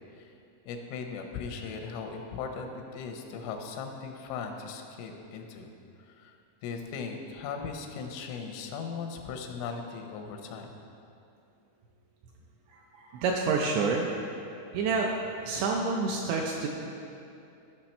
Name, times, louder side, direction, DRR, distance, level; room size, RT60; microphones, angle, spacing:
voice 1, 0.7-5.7 6.0-6.4 6.6-10.7, left 5 dB, 90° left, 4 dB, 3.4 m, -38 dB
voice 2, 12.7-14.3 14.7-16.7, right 4 dB, 85° right, 0 dB, 2.5 m, -29 dB
13.0 x 5.8 x 4.4 m, 2.7 s
omnidirectional pair, 5.6 m